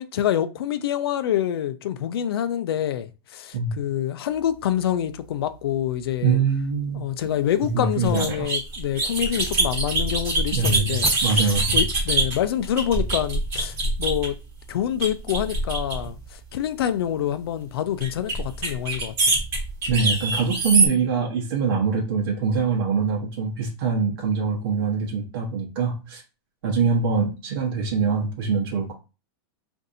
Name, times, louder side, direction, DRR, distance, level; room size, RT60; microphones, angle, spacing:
voice 1, 0.0-6.4 6.9-14.3 14.7-19.4, left 10 dB, 70° left, 0.4 m, -26 dB
voice 2, 6.2-7.0 7.7-8.5 10.5-11.8 19.9-26.2 26.6-28.9, right 5 dB, 60° right, 0.9 m, -24 dB
sound 1, 8.0-14.4 15.0-16.2 18.0-20.9, right 2 dB, 20° right, 1.0 m, -24 dB
4.0 x 2.6 x 2.5 m
supercardioid pair, 175°, 13 cm